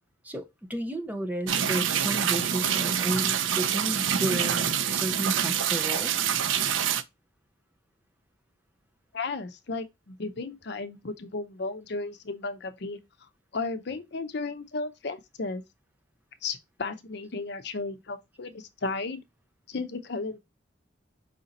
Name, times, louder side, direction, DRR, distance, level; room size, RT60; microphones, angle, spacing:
voice 1, 0.2-6.3, right 1 dB, 10° right, 0.7 m, -33 dB
sound 1, 1.5-7.0, right 8 dB, 85° right, 0.5 m, -26 dB
voice 2, 9.1-13.0 13.5-15.6 16.4-19.2 19.7-20.4, left 3 dB, 60° left, 0.6 m, -34 dB
4.9 x 2.7 x 3.8 m
head